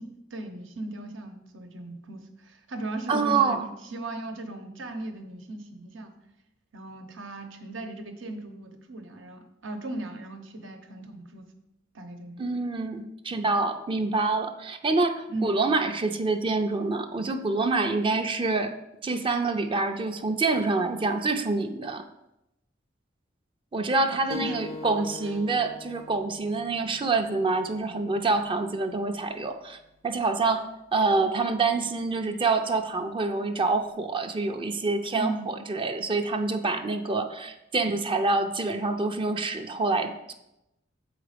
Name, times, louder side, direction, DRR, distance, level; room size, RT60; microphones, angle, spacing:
voice 1, 0.0-6.1 6.7-11.4 11.9-12.4 15.3-15.5 24.0-24.6 24.8-25.4 35.1-35.5, right 2 dB, 75° right, 6 dB, 1.0 m, -37 dB
voice 2, 3.1-3.7 12.4-18.7 19.0-22.1 23.7-29.8 30.0-40.3, right 3 dB, 25° right, 6 dB, 0.5 m, -26 dB
sound 1, 24.3-29.4, left 2 dB, 35° left, 0.4 m, -42 dB
7.3 x 4.8 x 5.1 m, 0.88 s
head